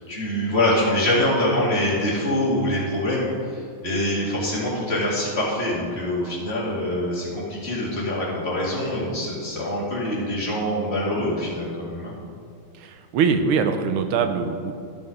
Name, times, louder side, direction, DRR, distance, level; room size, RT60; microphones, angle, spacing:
voice 1, 0.0-3.3 3.8-12.1, left 1 dB, 30° left, -6 dB, 2.6 m, -24 dB
voice 2, 12.8-14.7, right 5 dB, 85° right, 7 dB, 1.6 m, -22 dB
12.5 x 6.1 x 5.1 m, 2.3 s
omnidirectional pair, 2.4 m